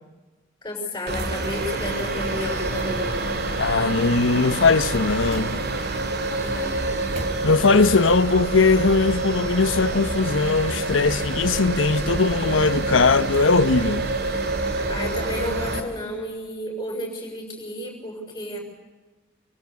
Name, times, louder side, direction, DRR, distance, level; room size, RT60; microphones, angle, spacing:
voice 1, 0.6-3.3 6.3-6.8 14.9-18.6, left 1 dB, 15° left, 6.1 m, -32 dB
sound 1, 1.1-15.8, right 2 dB, 55° right, 2.2 m, -27 dB
voice 2, 3.6-5.6 7.4-14.1, left 4 dB, 80° left, 0.9 m, -20 dB
sound 2, 4.7-6.1 6.7-8.0 8.3-8.4, right 1 dB, 30° right, 2.3 m, -41 dB
27.5 x 22.5 x 8.3 m
head